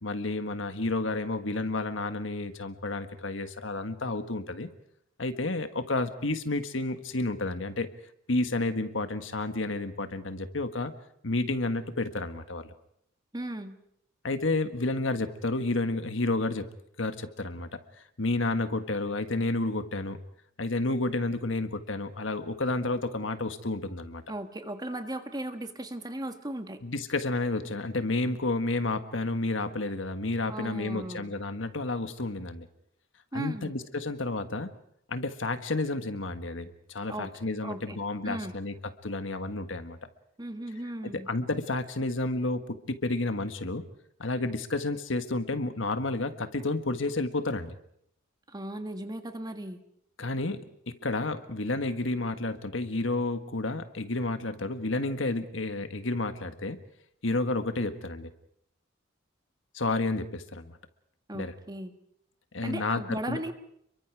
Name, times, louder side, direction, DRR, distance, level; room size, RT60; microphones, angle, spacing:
voice 1, 0.0-4.7 5.2-7.9 8.3-10.9 11.2-12.7 14.2-16.7 17.0-17.7 18.2-20.2 20.6-24.2 26.8-32.7 33.3-34.7 35.1-38.7 39.0-40.0 41.0-43.8 44.2-47.7 50.2-56.8 57.2-58.3 59.7-60.8 61.3-61.5 62.5-63.4, left 2 dB, 70° left, 9 dB, 1.6 m, -31 dB
voice 2, 13.3-13.8 24.3-26.8 30.5-31.3 33.3-33.7 37.1-37.3 37.6-38.0 38.2-38.5 40.4-41.3 48.5-49.8 61.3-61.9 62.6-63.5, right 1 dB, 20° right, 7 dB, 1.6 m, -37 dB
30.0 x 23.0 x 4.8 m, 0.71 s
head